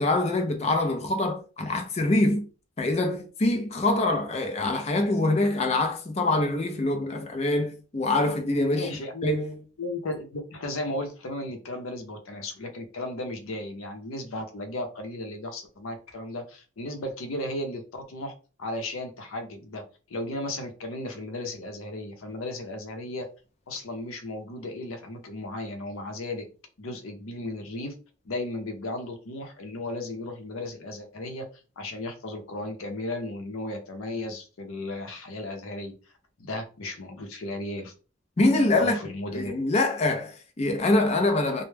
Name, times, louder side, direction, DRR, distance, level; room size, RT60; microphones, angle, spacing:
voice 1, 0.0-2.4 2.8-8.9 9.2-9.6 38.4-39.0 39.3-41.6, left 2 dB, 30° left, 0.4 m, -24 dB
voice 2, 8.7-9.3 9.8-18.3 18.6-19.8 20.1-23.3 23.7-26.4 26.8-27.9 28.2-31.5 31.8-35.9 36.4-37.9 38.8-39.5, left 1 dB, 85° left, 0.6 m, -35 dB
2.2 x 2.0 x 3.2 m
head